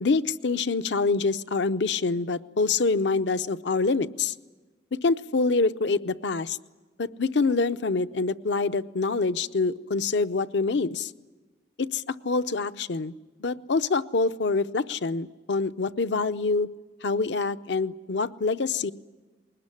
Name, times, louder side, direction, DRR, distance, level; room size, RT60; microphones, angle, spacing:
voice 1, 0.0-4.3 4.9-6.6 7.0-11.1 11.8-13.1 13.4-16.7 17.0-18.9, left 4 dB, 70° left, 12 dB, 0.7 m, -26 dB
21.5 x 19.0 x 9.8 m, 1.3 s
head